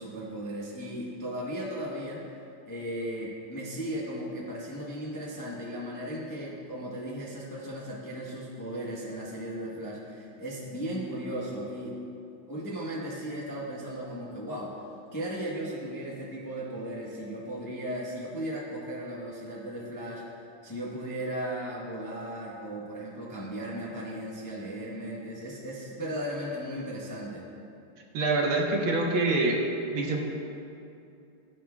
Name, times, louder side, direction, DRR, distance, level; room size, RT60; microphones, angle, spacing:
voice 1, 0.0-2.2 2.7-12.0 12.5-14.7 15.1-20.2 20.6-27.4, right 1 dB, 20° left, -6 dB, 0.6 m, -36 dB
voice 2, 28.1-29.6 29.9-30.2, right 2 dB, 70° right, 0 dB, 1.8 m, -25 dB
15.0 x 7.5 x 2.3 m, 2.7 s
omnidirectional pair, 2.4 m